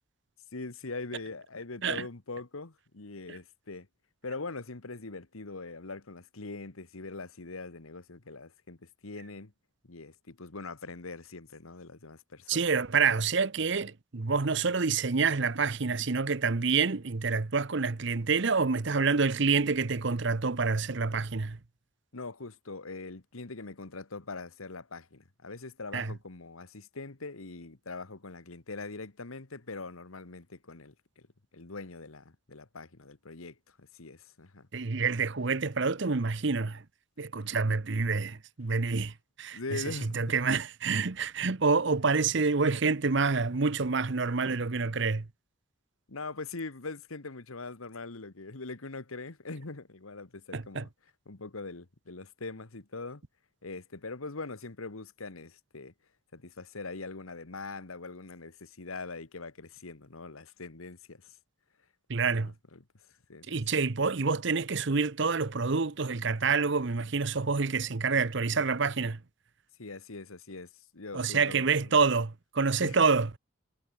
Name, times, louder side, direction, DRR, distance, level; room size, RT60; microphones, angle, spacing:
voice 1, 0.5-3.9 4.2-9.5 9.8-12.6 22.1-31.3 31.5-34.7 39.5-40.3 46.1-50.9 51.3-53.2 53.6-55.9 56.3-61.3 62.3-62.8 63.3-63.6 69.8-72.1 72.8-73.0, left 3 dB, 85° left, 1.5 m, -42 dB
voice 2, 12.5-21.6 25.9-26.1 34.7-36.8 37.2-45.3 50.5-50.8 62.1-62.5 63.5-69.2 71.1-73.4, right 4 dB, 55° right, 0.8 m, -27 dB
head